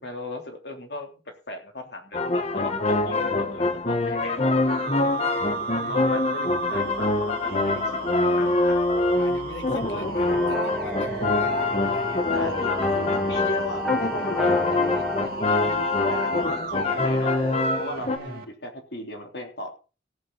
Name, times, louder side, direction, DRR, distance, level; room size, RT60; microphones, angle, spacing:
voice 1, 0.0-1.1 1.5-4.6 5.9-8.8 12.3-17.4 17.8-19.8, left 1 dB, 60° left, 3 dB, 3.3 m, -37 dB
sound 1, 2.1-18.2, left 2 dB, 35° left, 1.2 m, -25 dB
sound 2, 4.7-18.4, right 3 dB, 50° right, 2.9 m, -35 dB
voice 2, 9.2-12.6 18.1-18.4, left 1 dB, 80° left, 5 dB, 2.3 m, -40 dB
sound 3, 10.3-15.3, left 2 dB, ahead, 1.8 m, -32 dB
17.0 x 8.8 x 4.0 m, 0.34 s
head